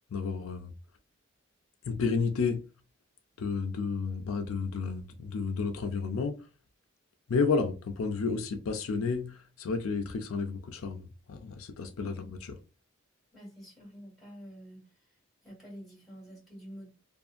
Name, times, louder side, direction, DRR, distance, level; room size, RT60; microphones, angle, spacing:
voice 1, 0.1-0.7 1.8-2.6 3.4-6.4 7.3-12.6, left 4 dB, 85° left, 0.4 m, -31 dB
voice 2, 13.3-14.9 15.4-16.9, equal, ahead, 1.5 m, -48 dB
2.6 x 2.5 x 2.4 m
head